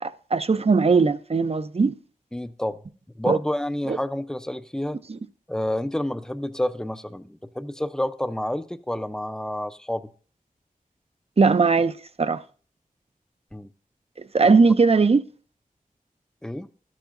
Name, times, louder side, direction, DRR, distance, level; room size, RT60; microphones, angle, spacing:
voice 1, 0.0-2.0 3.3-3.4 3.9-4.0 5.1-5.2 11.4-12.4 14.3-15.2, right 4 dB, 45° right, 0.5 m, -19 dB
voice 2, 2.3-2.8 3.2-5.0 5.5-10.1 13.5-13.7 16.4-16.7, left 1 dB, 5° left, 0.5 m, -29 dB
13.0 x 12.0 x 2.5 m
wide cardioid pair, 65°, 14 cm